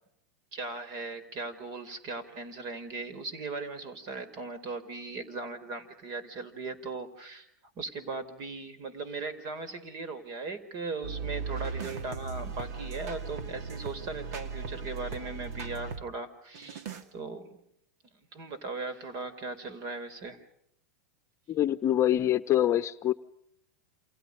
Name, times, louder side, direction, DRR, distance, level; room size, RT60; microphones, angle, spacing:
voice 1, 0.5-7.5 7.7-16.9 17.1-17.6 18.3-20.4, right 3 dB, 45° right, 4.5 m, -38 dB
sound 1, 11.0-16.0 16.5-17.0, right 5 dB, 65° right, 2.4 m, -37 dB
voice 2, 21.5-23.1, left 12 dB, 30° left, 0.9 m, -25 dB
29.0 x 27.5 x 5.4 m
hypercardioid pair, 110°, 9 cm